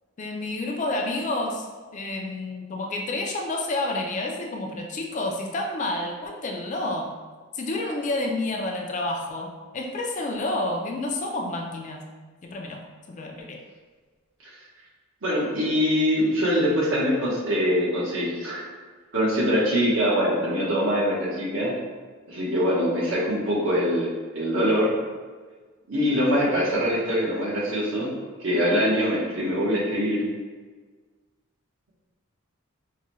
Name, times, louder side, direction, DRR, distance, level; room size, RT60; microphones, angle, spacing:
voice 1, 0.2-1.7 1.9-7.1 7.5-12.0 12.4-12.8 13.1-13.6 28.7-28.8, left 2 dB, 35° left, 1 dB, 0.4 m, -29 dB
voice 2, 15.2-18.7 19.1-21.7 22.3-24.9 25.9-28.1 28.4-30.2, equal, 65° right, -6 dB, 1.1 m, -23 dB
4.7 x 2.2 x 3.0 m, 1.4 s
head